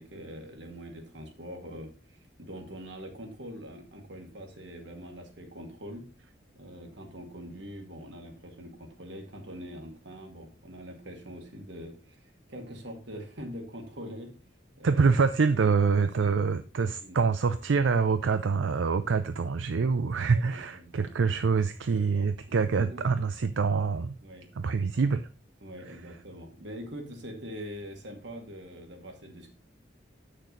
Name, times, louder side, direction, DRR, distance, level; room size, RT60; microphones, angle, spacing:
voice 1, 0.0-6.1 6.5-14.3 14.8-15.2 15.5-15.7 16.0-16.3 16.8-17.2 20.3-21.6 21.9-22.3 22.8-23.1 24.2-24.5 25.6-29.5, equal, 70° right, 2.0 m, -43 dB
voice 2, 14.8-24.1 24.6-25.3, right 5 dB, 85° right, 0.5 m, -25 dB
8.2 x 6.5 x 3.9 m
head